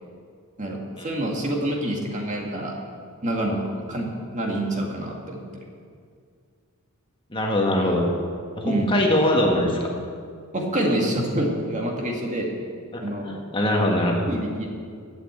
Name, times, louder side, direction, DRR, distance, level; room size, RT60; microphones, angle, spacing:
voice 1, 0.6-2.7 3.2-5.4 8.6-8.9 10.5-12.5 13.0-13.4 14.3-14.7, right 1 dB, 35° right, 0 dB, 1.9 m, -27 dB
voice 2, 7.3-8.0 8.6-9.9 12.9-14.2, left 1 dB, 20° left, 0 dB, 1.7 m, -22 dB
11.5 x 8.7 x 8.2 m, 2.2 s
head